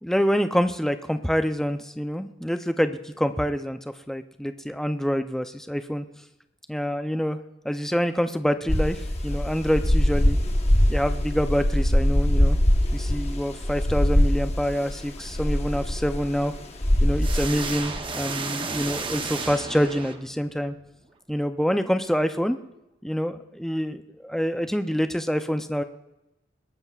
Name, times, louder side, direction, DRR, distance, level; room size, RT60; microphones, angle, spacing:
voice 1, 0.0-3.8 4.1-6.1 6.7-7.4 7.6-10.4 10.9-12.6 12.9-16.5 17.0-20.7 21.3-22.6 23.0-25.8, equal, ahead, 8 dB, 0.5 m, -26 dB
sound 1, 8.7-18.0, equal, 35° left, 1.1 m, -22 dB
sound 2, 17.2-20.6, right 4 dB, 30° right, 0.8 m, -32 dB
21.5 x 18.0 x 2.4 m, 0.96 s
head